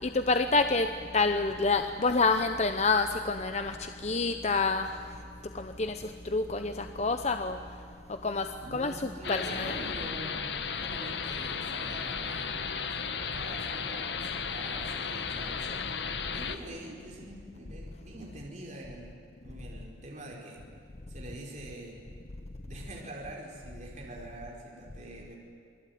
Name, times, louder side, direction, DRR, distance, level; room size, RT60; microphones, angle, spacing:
voice 1, 0.0-4.9 5.5-7.6 8.2-9.7, left 3 dB, 40° left, 7 dB, 1.0 m, -28 dB
voice 2, 8.6-15.9 16.3-19.1 19.4-20.6 21.1-22.0 22.6-25.4, right 1 dB, 45° right, -2 dB, 4.8 m, -45 dB
sound 1, 9.2-16.6, left 6 dB, 80° left, 1.6 m, -34 dB
28.0 x 20.5 x 9.5 m, 2.4 s
head